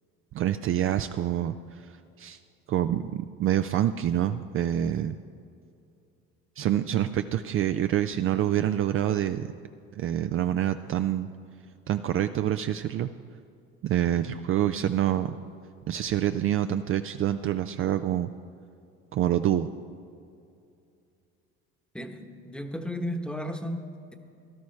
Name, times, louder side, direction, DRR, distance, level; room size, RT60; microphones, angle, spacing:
voice 1, 0.3-1.8 2.2-2.4 2.7-5.2 6.6-9.5 10.0-11.3 11.9-13.1 13.8-15.4 15.9-18.3 19.1-19.7, right 11 dB, 45° right, 9 dB, 0.4 m, -26 dB
voice 2, 21.9-23.8, equal, 5° left, 5 dB, 1.0 m, -34 dB
17.0 x 12.0 x 3.2 m, 2.5 s
supercardioid pair, 90°, 30 cm